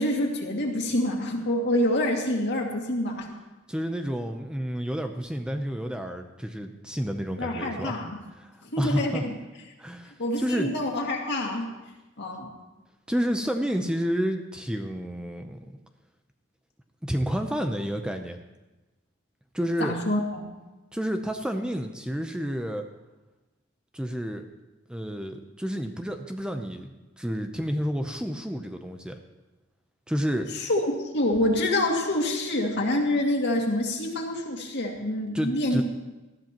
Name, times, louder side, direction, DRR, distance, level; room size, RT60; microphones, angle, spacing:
voice 1, 0.0-3.3 7.4-8.2 8.7-9.3 10.2-11.7 12.2-12.5 19.8-20.5 30.6-35.8, left 1 dB, 60° left, 0 dB, 2.2 m, -26 dB
voice 2, 3.7-8.0 8.4-9.2 9.8-10.7 13.1-15.6 17.0-18.4 19.5-20.0 20.9-22.8 23.9-24.5 24.9-29.2 30.1-30.5 35.3-35.8, equal, 5° right, 5 dB, 0.6 m, -30 dB
19.5 x 13.0 x 3.0 m, 1.1 s
head